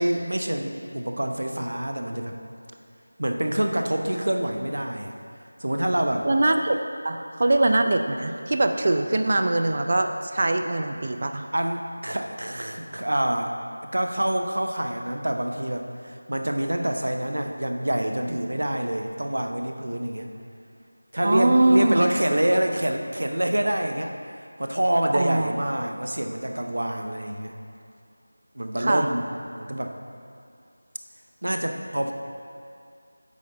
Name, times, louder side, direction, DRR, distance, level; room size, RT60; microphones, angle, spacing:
voice 1, 0.0-2.4 3.2-5.1 5.6-6.3 11.5-13.6 13.9-20.3 21.1-27.5 28.5-29.3 29.6-29.9 31.4-32.1, right 1 dB, 75° right, 5 dB, 0.7 m, -26 dB
voice 2, 6.2-6.8 7.0-11.5 21.2-22.1 25.1-25.5 28.8-29.1, right 2 dB, 40° right, 6 dB, 0.4 m, -22 dB
8.5 x 5.3 x 3.9 m, 2.4 s
figure-of-eight pair, 175°, 0 cm